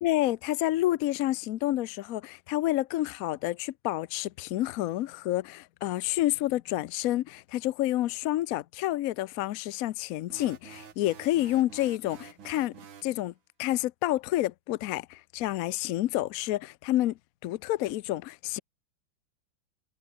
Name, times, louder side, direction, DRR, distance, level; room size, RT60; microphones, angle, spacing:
voice 1, 0.0-12.8 13.0-13.3 13.6-18.6, left 15 dB, 80° left, 0.7 m, -29 dB
sound 1, 10.3-13.2, right 7 dB, 80° right, 2.6 m, -49 dB
omnidirectional pair, 2.1 m